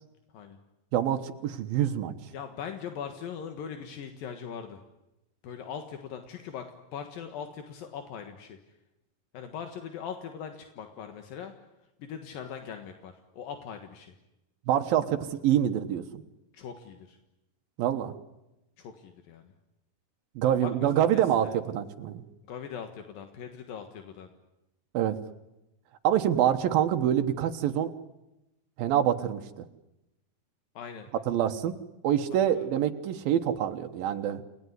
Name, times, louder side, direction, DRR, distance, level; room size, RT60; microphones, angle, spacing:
voice 1, 0.9-2.1 14.7-16.2 17.8-18.1 20.4-22.2 24.9-25.2 26.0-27.9 28.8-29.6 31.3-31.8 32.0-34.4, right 10 dB, 90° right, 5 dB, 3.1 m, -26 dB
voice 2, 2.3-4.8 5.4-8.6 9.3-11.5 12.0-14.1 16.5-17.2 18.8-19.5 20.5-21.5 22.4-24.3 30.7-31.1 32.5-32.7, left 7 dB, 75° left, 6 dB, 3.3 m, -41 dB
29.5 x 19.0 x 9.6 m, 0.93 s
omnidirectional pair, 4.1 m